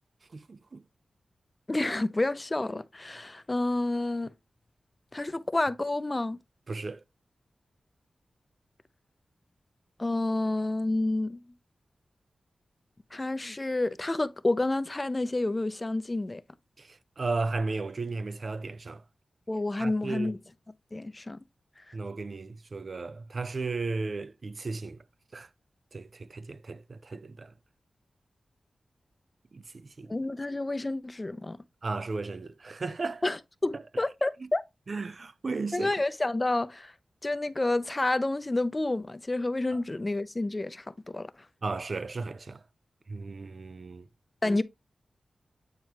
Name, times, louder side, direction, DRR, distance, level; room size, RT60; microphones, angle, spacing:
voice 1, 0.3-0.8 6.7-7.0 16.8-19.0 19.8-20.3 21.9-25.0 25.3-25.5 25.9-27.5 29.5-30.1 31.8-33.2 33.7-33.8 34.9-35.9 41.6-42.6 43.1-44.0, right 3 dB, 50° right, 0.5 m, -35 dB
voice 2, 1.7-4.3 5.1-6.4 10.0-11.4 13.1-16.4 19.5-20.4 20.9-21.4 21.9-22.0 30.1-31.6 33.2-34.6 35.7-36.9 37.2-41.3 44.4-44.6, left 2 dB, 25° left, 0.6 m, -29 dB
8.9 x 4.6 x 3.0 m
wide cardioid pair, 80°, 0 cm